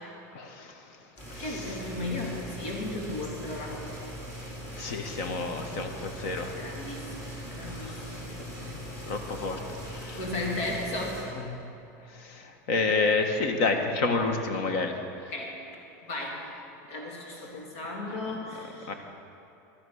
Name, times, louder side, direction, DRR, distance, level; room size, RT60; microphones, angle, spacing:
voice 1, 0.3-0.7 1.3-1.8 4.8-6.5 7.6-8.0 8.6-9.6 9.9-10.2 11.5-11.6 12.2-14.9 18.1-18.2 18.9-19.0, left 3 dB, 50° left, 5 dB, 1.4 m, -29 dB
sound 1, 1.2-11.2, equal, 25° left, 3.3 m, -40 dB
voice 2, 1.4-3.8 6.6-8.3 10.1-11.2 15.3-15.6 16.1-16.4 16.9-18.9, left 2 dB, 80° left, -2 dB, 3.2 m, -35 dB
12.5 x 11.0 x 6.4 m, 2.8 s
supercardioid pair, 165°, 9 cm